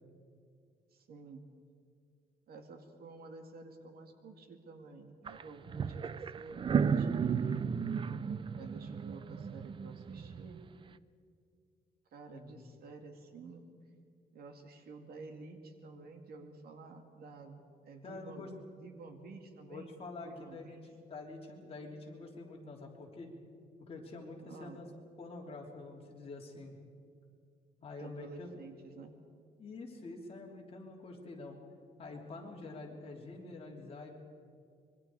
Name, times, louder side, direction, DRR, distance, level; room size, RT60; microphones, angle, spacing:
voice 1, 0.9-1.4 2.5-7.7 8.5-10.6 12.1-13.7 14.3-19.9 20.2-20.9 24.4-24.8 28.0-29.1, right 3 dB, 65° right, 5 dB, 2.3 m, -51 dB
sound 1, 5.3-5.4 5.7-10.6, right 6 dB, 30° right, 0.5 m, -34 dB
voice 2, 12.3-12.8 18.0-18.5 19.7-23.3 23.8-24.8 25.2-26.8 27.8-28.6 29.6-31.6 32.0-34.1, left 3 dB, 35° left, -1 dB, 3.3 m, -47 dB
25.5 x 23.0 x 4.8 m, 2.3 s
cardioid pair, 160°, 17 cm